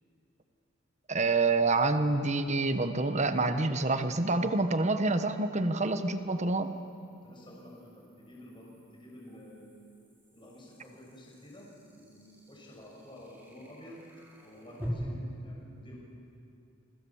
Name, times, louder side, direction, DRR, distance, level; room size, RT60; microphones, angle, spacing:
voice 1, 1.1-6.7, right 3 dB, 35° right, 9 dB, 1.3 m, -27 dB
sound 1, 1.2-1.3 4.7-14.9, right 1 dB, 10° right, 4.8 m, -53 dB
voice 2, 7.1-9.7 10.3-11.7 11.9-14.0 14.4-16.0, left 1 dB, 25° left, -3 dB, 6.5 m, -50 dB
28.5 x 24.5 x 7.4 m, 2.6 s
head